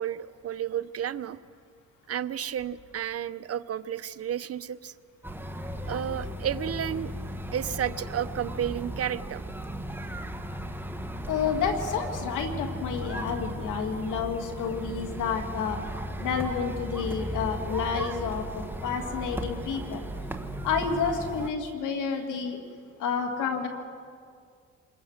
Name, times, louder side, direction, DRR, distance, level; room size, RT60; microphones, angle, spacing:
voice 1, 0.0-1.4 2.1-4.9 5.8-7.1 7.5-9.4, right 9 dB, 50° right, 14 dB, 0.8 m, -32 dB
sound 1, 5.2-21.5, equal, 5° right, 1.6 m, -36 dB
voice 2, 11.3-15.8 16.2-20.0 20.6-22.6 23.0-23.7, left 6 dB, 90° left, 4 dB, 2.7 m, -30 dB
27.0 x 21.5 x 6.6 m, 2.1 s
cardioid pair, 90°, 30 cm